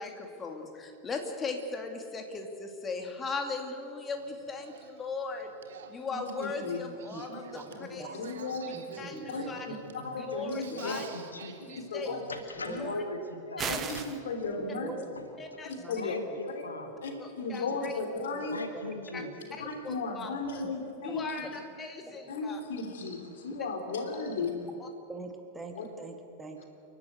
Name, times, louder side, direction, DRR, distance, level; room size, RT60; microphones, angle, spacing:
voice 1, 0.0-5.5 5.9-7.6 7.9-8.2 9.0-9.7 10.2-11.1 11.7-12.2 12.8-13.0 13.6-13.8 15.4-15.7 16.0-16.1 17.2-17.9 19.1-19.2 19.5-20.6 21.0-22.6 24.1-24.2 24.8-24.9, left 4 dB, 20° left, 4 dB, 2.5 m, -38 dB
Male speech man speaking / Female speech woman speaking / Conversation, 4.1-11.8, right 6 dB, 60° right, 1.8 m, -49 dB
voice 2, 6.1-6.8 7.3-7.4 7.8-7.9 8.1-9.0 9.3-11.0 11.6-12.2 12.6-12.9 13.7-14.9 15.6-16.2 16.5-16.6 17.0-18.6 19.6-21.3 22.3-24.5 25.7-25.9 26.6-26.7, left 3 dB, 60° left, 5 dB, 3.1 m, -35 dB
voice 3, 7.5-8.1 8.7-9.8 10.7-11.1 12.0-12.3 12.6-12.8 14.6-16.0 16.8-17.0 18.3-19.3 21.1-21.5 22.1-22.3 24.4-24.7 25.1-26.6, right 3 dB, 10° right, 4 dB, 2.1 m, -45 dB
voice 4, 10.8-11.8 12.3-13.8 16.0-16.9 18.5-19.3, left 2 dB, 75° left, 6 dB, 1.6 m, -39 dB
sound 1, 13.6-14.2, right 8 dB, 25° right, 1.3 m, -34 dB
29.5 x 12.0 x 8.1 m, 2.6 s
figure-of-eight pair, 90°, 0 cm